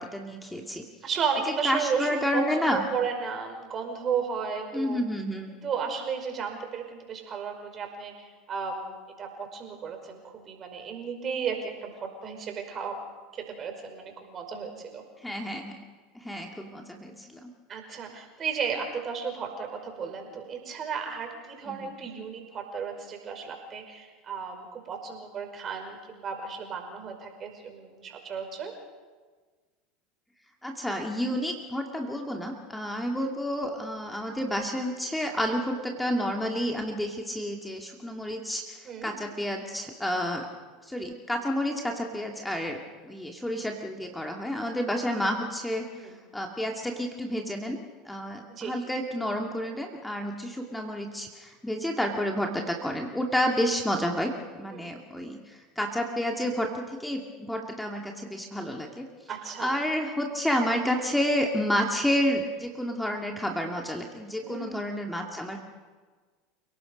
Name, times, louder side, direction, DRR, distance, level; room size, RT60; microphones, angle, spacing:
voice 1, 0.0-0.8 1.6-2.8 4.7-5.5 15.2-15.7 16.1-17.5 21.7-22.0 30.6-40.5 40.8-47.8 48.0-59.1 59.6-65.6, equal, 5° left, 2 dB, 2.5 m, -30 dB
voice 2, 1.0-5.1 5.5-13.0 13.3-15.0 17.7-28.7 38.9-39.1 46.0-46.2 48.5-48.8 54.7-54.9 59.3-59.8 64.4-64.8, right 6 dB, 35° right, 3 dB, 5.5 m, -34 dB
29.5 x 18.0 x 5.4 m, 1.4 s
hypercardioid pair, 85°, 0 cm